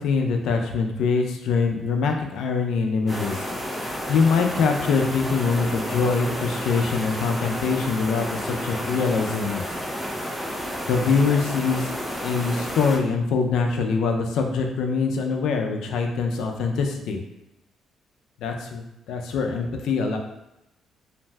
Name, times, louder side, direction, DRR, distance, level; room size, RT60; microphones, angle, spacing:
voice 1, 0.0-3.5 4.1-9.6 10.9-11.9 12.2-17.2 18.4-20.2, left 4 dB, 80° left, 3 dB, 0.4 m, -23 dB
sound 1, 3.1-13.0, equal, 5° right, 0.6 m, -31 dB
2.5 x 2.1 x 3.3 m, 0.88 s
cardioid pair, 90°, 0 cm